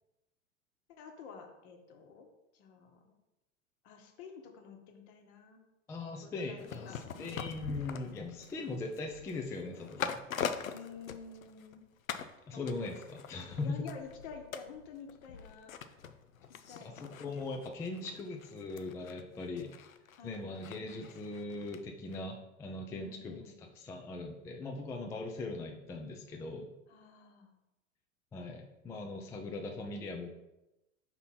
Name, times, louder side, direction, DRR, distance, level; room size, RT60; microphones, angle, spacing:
voice 1, 0.9-2.3 2.5-3.1 3.8-5.6 6.2-7.4 8.5-8.7 10.6-11.9 12.5-12.7 13.6-15.7 16.5-16.9 18.0-18.3 20.2-20.5 22.9-23.6 26.9-27.5, left 6 dB, 55° left, 4 dB, 1.2 m, -50 dB
voice 2, 5.9-10.2 12.5-13.9 16.8-19.7 20.2-26.7 28.3-30.3, left 3 dB, 10° left, 2 dB, 0.3 m, -40 dB
sound 1, 6.6-11.8 12.1-12.4 12.7-21.8 22.1-22.2, left 7 dB, 85° left, 0.5 m, -43 dB
5.5 x 4.1 x 4.2 m, 0.96 s
figure-of-eight pair, 90°, 40 cm